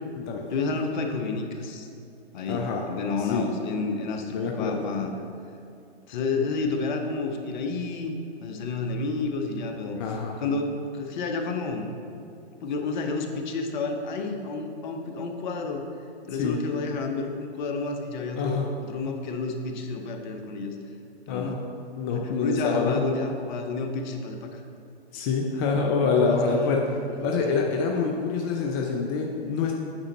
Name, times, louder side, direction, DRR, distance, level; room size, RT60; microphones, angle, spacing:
voice 1, 0.5-1.9 2.3-5.1 6.1-8.2 8.4-10.0 10.4-11.9 12.6-15.9 16.3-18.6 18.9-20.8 21.3-21.6 22.1-24.6 25.6-27.3, left 3 dB, 45° left, 4 dB, 0.9 m, -30 dB
voice 2, 2.5-2.8 3.2-3.5 4.3-4.8 10.0-10.4 16.4-16.6 18.4-18.6 21.3-21.6 22.0-23.0 25.1-26.9 27.2-29.7, left 4 dB, 20° left, 0 dB, 0.4 m, -26 dB
8.9 x 5.1 x 4.3 m, 2.4 s
hypercardioid pair, 125°, 32 cm